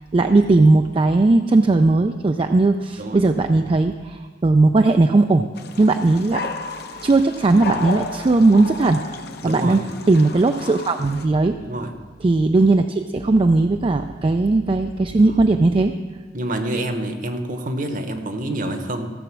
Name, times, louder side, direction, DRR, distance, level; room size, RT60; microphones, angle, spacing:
voice 1, 0.1-5.4 5.8-6.5 7.0-9.0 9.4-9.8 10.1-11.6 12.2-15.9, right 2 dB, 30° right, 7 dB, 0.3 m, -17 dB
sound 1, 5.6-11.3, left 3 dB, 60° left, 0.8 m, -33 dB
voice 2, 9.4-9.8 11.6-11.9 15.1-15.4 16.3-19.1, right 1 dB, 45° right, 7 dB, 1.1 m, -27 dB
15.0 x 7.2 x 6.1 m, 1.4 s
head